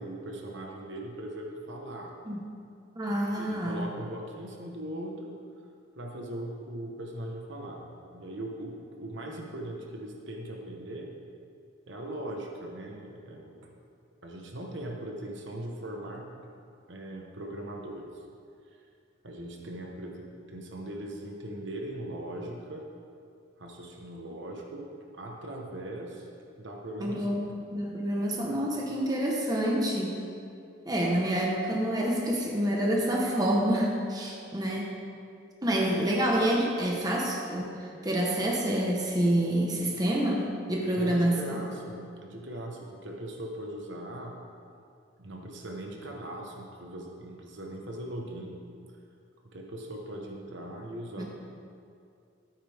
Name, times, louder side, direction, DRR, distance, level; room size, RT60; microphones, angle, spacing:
voice 1, 0.0-2.1 3.3-5.4 6.0-11.1 11.9-13.7 14.2-16.3 16.9-18.2 19.2-22.9 23.6-24.9 25.1-26.3 26.6-27.5 41.0-44.4 45.2-48.6 49.5-51.2, right 1 dB, 60° right, 0 dB, 1.2 m, -39 dB
voice 2, 3.0-3.9 27.0-30.2 30.9-34.9 35.6-41.4 51.2-51.3, right 1 dB, 20° right, -2 dB, 1.2 m, -27 dB
13.0 x 9.3 x 3.6 m, 2.4 s
head